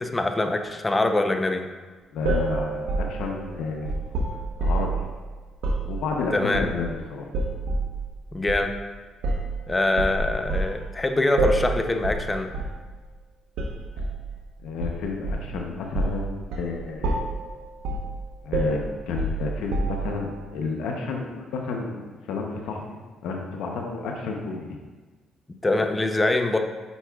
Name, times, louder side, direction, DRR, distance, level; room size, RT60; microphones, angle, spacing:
voice 1, 0.0-1.7 6.3-6.7 8.3-8.7 9.7-12.5 25.6-26.6, left 2 dB, 20° left, 6 dB, 0.6 m, -24 dB
voice 2, 2.1-3.9 4.6-5.0 5.9-7.3 14.6-17.1 18.4-23.0 23.2-24.6, left 4 dB, 80° left, 1 dB, 0.7 m, -31 dB
sound 1, 2.2-5.0 5.6-5.9 6.5-7.0 7.3-7.9 8.5-8.7 9.2-9.6 10.0-10.8 11.4-11.7 12.0-12.3 12.5-12.8 13.6-14.2 14.8-15.6 15.9-16.2 16.5-16.7 17.0-17.4 17.8-18.1 18.5-20.2, right 2 dB, 85° right, 0.9 m, -26 dB
8.2 x 5.9 x 2.3 m, 1.3 s
cardioid pair, 85°, 0 cm